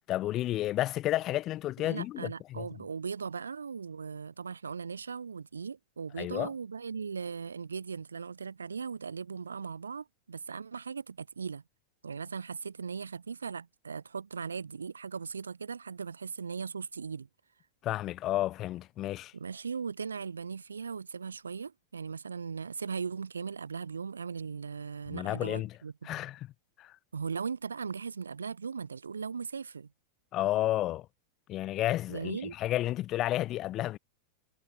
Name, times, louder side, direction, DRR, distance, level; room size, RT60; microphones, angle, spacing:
voice 1, 0.1-2.7 6.2-6.5 17.8-19.3 25.1-25.8 26.0-26.5 26.8-26.9 30.3-31.1 31.5-34.0, left 14 dB, 35° left, 0.5 m, -31 dB
voice 2, 1.8-11.6 12.0-17.3 19.3-26.2 27.1-29.9 32.1-32.6, right 5 dB, 75° right, 0.7 m, -38 dB
figure-of-eight pair, 90°, 0 cm